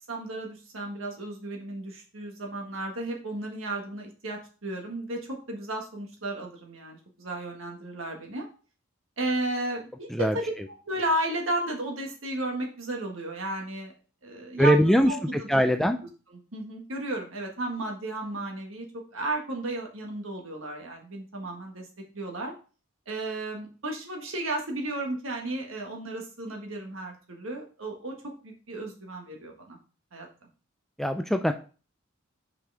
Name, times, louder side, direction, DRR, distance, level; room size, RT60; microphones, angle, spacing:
voice 1, 0.1-5.2 5.5-8.5 9.2-10.5 10.8-13.9 14.2-15.6 16.3-18.9 19.1-21.8 22.1-22.5 23.1-28.1 28.4-29.8 30.1-30.3, right 2 dB, 75° right, 1 dB, 1.7 m, -33 dB
voice 2, 14.6-16.0 31.0-31.5, equal, ahead, 6 dB, 0.3 m, -22 dB
6.0 x 5.0 x 3.4 m, 0.36 s
head